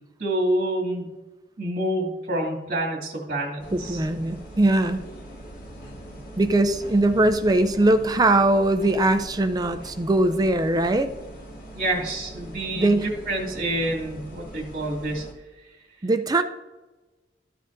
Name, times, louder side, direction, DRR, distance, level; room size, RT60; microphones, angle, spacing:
voice 1, 0.2-1.1 1.6-4.0 11.7-15.3, right 1 dB, 50° right, 0 dB, 2.2 m, -27 dB
sound 1, 3.6-15.3, right 1 dB, 55° left, 1.6 m, -41 dB
voice 2, 3.7-5.0 6.4-11.1 12.8-13.1 16.0-16.4, right 2 dB, 20° right, 9 dB, 0.4 m, -21 dB
13.5 x 7.6 x 2.6 m, 1.1 s
head